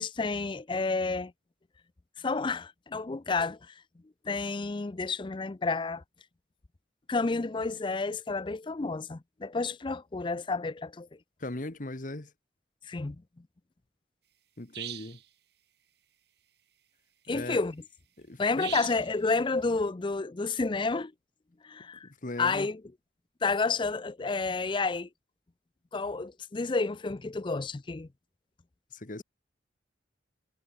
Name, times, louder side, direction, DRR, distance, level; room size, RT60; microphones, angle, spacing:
voice 1, 0.0-1.3 2.2-3.7 4.2-6.0 7.1-11.1 12.9-13.2 17.3-17.8 18.4-21.1 21.6-22.1 22.4-22.8 23.4-25.1 25.9-28.1, left 3 dB, 25° left, 0.5 m, -30 dB
voice 2, 11.4-12.3 14.6-15.2 17.3-17.6 18.2-18.8 22.0-22.7 28.9-29.2, left 2 dB, 45° left, 1.4 m, -39 dB
sound 1, 14.7-15.2 18.6-19.1, right 13 dB, 60° right, 5.3 m, -39 dB
head